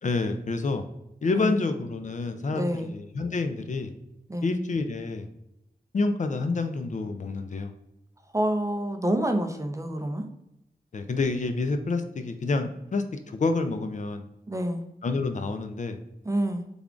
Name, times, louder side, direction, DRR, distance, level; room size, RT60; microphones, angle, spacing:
voice 1, 0.0-0.8 1.2-3.9 4.4-5.3 5.9-7.7 10.9-14.2 15.0-16.0, left 3 dB, 50° left, 7 dB, 0.4 m, -28 dB
voice 2, 2.5-2.9 4.3-4.6 8.3-10.2 14.5-14.8 16.3-16.7, right 1 dB, 20° right, 6 dB, 0.4 m, -27 dB
3.4 x 2.4 x 3.7 m, 0.86 s
wide cardioid pair, 80°, 16 cm